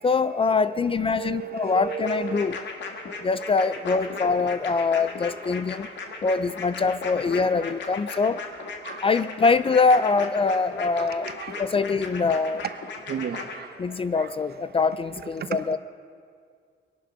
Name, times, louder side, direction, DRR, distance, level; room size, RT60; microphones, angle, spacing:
voice 1, 0.0-2.6 3.2-5.9 6.2-8.4 9.0-11.3 11.6-12.6 13.8-15.8, left 4 dB, 30° left, 15 dB, 0.4 m, -23 dB
voice 2, 0.9-2.6 8.9-9.2 11.0-11.1 11.4-11.5 13.1-13.7 14.2-14.3 15.4-15.5, right 9 dB, 55° right, 10 dB, 1.0 m, -34 dB
sound 1, 1.9-13.6, left 4 dB, 65° left, 1.9 m, -36 dB
23.0 x 11.5 x 5.5 m, 2.2 s
cardioid pair, 90°, 20 cm